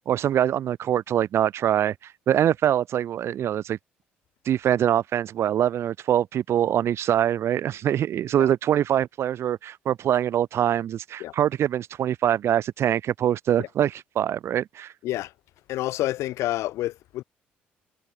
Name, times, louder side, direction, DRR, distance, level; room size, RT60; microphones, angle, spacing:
voice 1, 0.0-3.8 4.5-14.9, right 10 dB, 60° right, 0.6 m, -24 dB
voice 2, 15.7-17.2, left 15 dB, 70° left, 0.5 m, -28 dB
hypercardioid pair, 50°, 5 cm